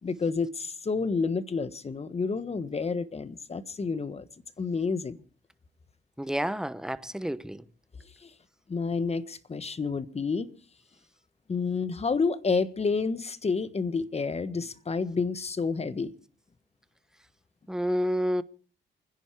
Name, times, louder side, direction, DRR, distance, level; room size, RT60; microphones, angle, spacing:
voice 1, 0.0-4.2 4.6-5.2 8.2-8.3 8.7-10.5 11.5-16.1, left 4 dB, 30° left, 1.4 m, -29 dB
voice 2, 6.2-7.6 17.7-18.4, equal, 5° right, 1.0 m, -29 dB
28.5 x 10.5 x 4.7 m
cardioid pair, 85°, 20 cm